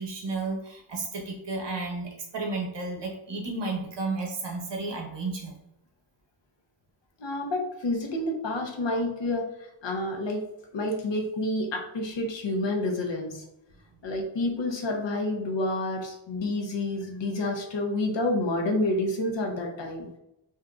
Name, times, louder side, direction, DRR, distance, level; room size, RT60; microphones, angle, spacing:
voice 1, 0.0-5.5, right 3 dB, 60° right, 0 dB, 0.9 m, -32 dB
voice 2, 7.2-9.5 9.8-10.4 10.7-13.4 14.0-20.1, left 2 dB, 65° left, 1 dB, 0.7 m, -29 dB
3.6 x 2.7 x 2.3 m, 0.82 s
wide cardioid pair, 135°, 47 cm